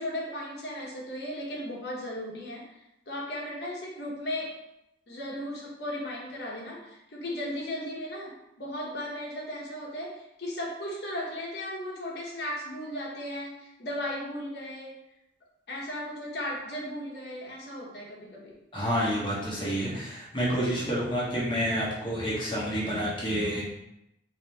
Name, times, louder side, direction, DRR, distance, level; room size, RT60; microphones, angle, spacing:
voice 1, 0.0-2.8 3.1-4.5 5.1-15.0 15.7-18.6, left 1 dB, 55° left, -3 dB, 1.0 m, -36 dB
voice 2, 18.7-23.6, equal, 25° left, -6 dB, 1.1 m, -29 dB
4.1 x 2.7 x 3.3 m, 0.85 s
head